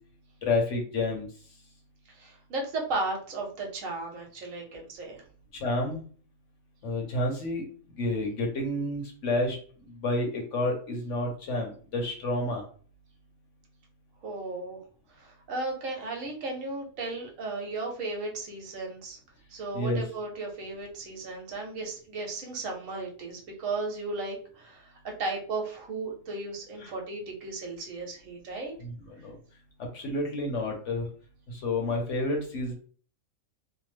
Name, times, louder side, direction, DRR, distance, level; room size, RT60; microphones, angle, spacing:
voice 1, 0.4-1.2 5.6-6.0 6.8-7.6 8.0-9.6 10.0-12.6 19.7-20.0 26.8-26.9 29.2-29.3 29.9-31.1 31.6-32.7, left 2 dB, 60° left, 1 dB, 1.0 m, -29 dB
voice 2, 2.1-5.2 14.2-14.8 15.1-19.2 19.5-28.7, right 3 dB, 65° right, 1 dB, 1.1 m, -35 dB
2.8 x 2.0 x 3.2 m, 0.43 s
omnidirectional pair, 1.5 m